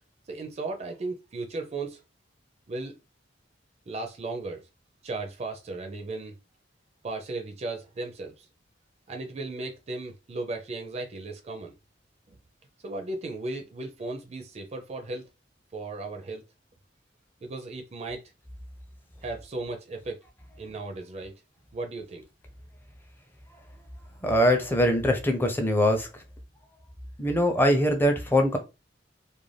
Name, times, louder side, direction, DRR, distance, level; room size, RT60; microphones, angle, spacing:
voice 1, 0.3-2.0 2.7-2.9 3.9-4.6 5.0-6.4 7.0-8.5 9.1-11.7 12.3-12.4 12.8-15.3 15.7-16.4 17.4-18.2 19.2-20.2 20.6-21.3 21.7-22.2, right 2 dB, 35° right, 0.4 m, -36 dB
voice 2, 24.2-26.1 27.2-28.6, equal, 10° left, 0.5 m, -22 dB
2.5 x 2.2 x 3.2 m
head